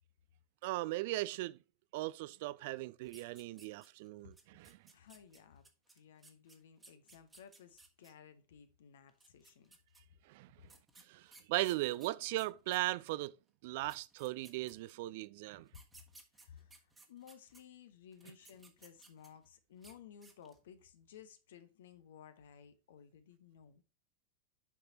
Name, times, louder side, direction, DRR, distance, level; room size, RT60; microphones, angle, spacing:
voice 1, 0.6-1.6 1.9-4.8 10.3-10.5 11.1-13.3 13.6-15.7, right 18 dB, 50° right, 0.4 m, -38 dB
sound 1, 3.0-4.1 4.4-8.1 9.1-10.0 10.7-13.2 13.6-13.7 13.9-15.1 15.7-17.6 18.1-19.4 19.8-19.9 20.2-20.6, right 3 dB, 10° right, 1.4 m, -60 dB
voice 2, 4.9-9.8 16.3-23.8, left 8 dB, 60° left, 1.0 m, -57 dB
8.1 x 5.9 x 2.9 m
figure-of-eight pair, 90°, 0 cm